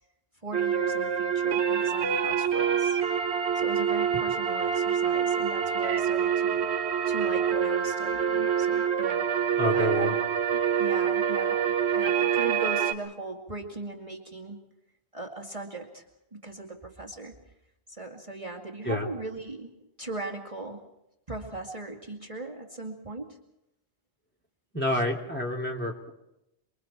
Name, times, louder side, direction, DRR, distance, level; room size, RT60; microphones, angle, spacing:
voice 1, 0.4-3.0 3.5-6.7 7.0-9.3 9.7-10.2 10.5-14.6 15.1-16.0 16.3-17.4 17.9-20.9 21.3-23.4, right 2 dB, 30° right, 0 dB, 2.2 m, -39 dB
sound 1, 0.5-12.9, right 7 dB, 75° right, 1.2 m, -26 dB
voice 2, 9.6-10.1 18.8-19.1 24.7-26.1, left 1 dB, 10° left, -1 dB, 3.0 m, -28 dB
29.0 x 23.0 x 4.4 m, 0.85 s
omnidirectional pair, 1.1 m